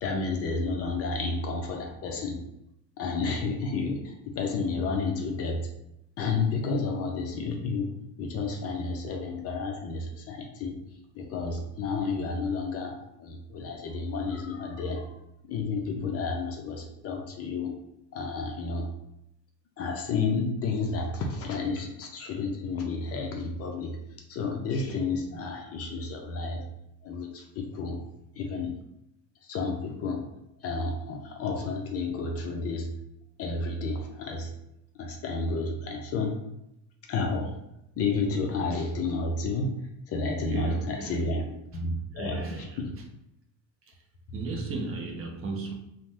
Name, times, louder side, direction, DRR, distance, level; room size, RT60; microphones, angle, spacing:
voice 1, 0.0-2.4 3.0-5.7 6.2-7.9 8.2-10.8 11.1-15.2 15.4-17.8 18.1-18.9 19.8-26.6 27.0-28.0 28.3-28.8 29.4-30.3 30.6-32.9 33.4-34.5 34.9-36.4 37.1-37.6 38.0-39.8 40.1-41.4 41.7-42.4 42.8-42.9, left 3 dB, 40° left, 2 dB, 0.4 m, -31 dB
voice 2, 40.3-41.3 42.1-43.0 43.8-44.0 44.3-45.7, right 3 dB, 35° right, 2 dB, 0.4 m, -36 dB
2.7 x 2.0 x 3.3 m, 0.83 s
cardioid pair, 135°, 40 cm